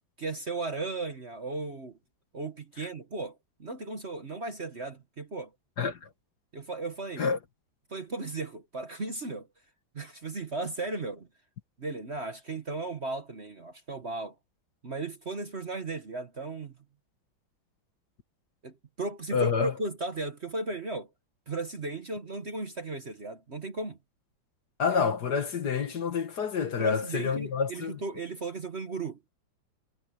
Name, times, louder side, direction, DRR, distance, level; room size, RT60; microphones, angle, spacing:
voice 1, 0.2-2.0 2.3-5.5 6.5-7.3 7.9-9.5 9.9-11.3 11.8-14.3 14.8-16.7 18.6-21.1 21.5-24.0 26.8-29.2, right 3 dB, 35° right, 1.4 m, -36 dB
voice 2, 5.8-6.1 7.2-7.4 19.3-19.7 24.8-28.0, left 6 dB, 55° left, 1.9 m, -28 dB
omnidirectional pair, 2.2 m